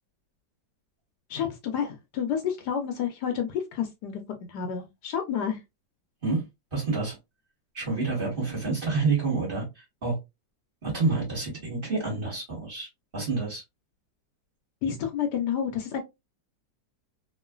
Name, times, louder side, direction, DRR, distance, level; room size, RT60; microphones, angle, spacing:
voice 1, 1.3-4.2 4.5-5.6 14.8-16.0, left 8 dB, 75° left, 1.1 m, -29 dB
voice 2, 6.7-7.2 7.7-10.2 10.8-13.6, right 4 dB, 35° right, 1.3 m, -28 dB
3.0 x 2.4 x 2.2 m
omnidirectional pair, 2.0 m